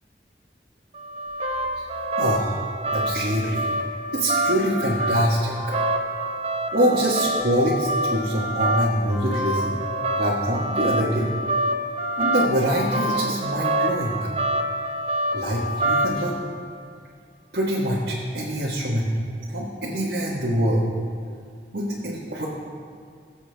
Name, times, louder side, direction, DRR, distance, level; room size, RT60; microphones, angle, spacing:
sound 1, 0.9-16.3, right 1 dB, 35° right, 1.1 m, -26 dB
voice 1, 2.2-2.6 2.9-3.7 4.1-5.7 6.7-9.7 10.2-11.3 12.2-14.2 15.3-16.4 17.5-19.1 19.5-20.9 21.7-22.4, equal, 65° right, -6 dB, 1.5 m, -24 dB
20.5 x 7.3 x 3.5 m, 2.2 s
head